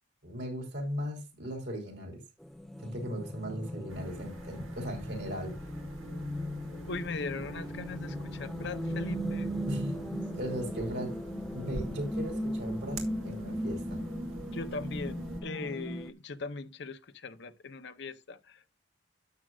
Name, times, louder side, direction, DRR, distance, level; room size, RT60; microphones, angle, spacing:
voice 1, 0.2-2.2 2.8-5.6 9.7-10.0 10.3-14.0, equal, 55° right, 3.4 m, -37 dB
sound 1, 2.4-16.1, left 1 dB, ahead, 0.4 m, -39 dB
sound 2, 3.9-15.4, right 2 dB, 90° right, 2.2 m, -41 dB
voice 2, 6.9-9.5 14.5-18.8, left 3 dB, 55° left, 0.7 m, -40 dB
12.0 x 7.5 x 2.4 m
head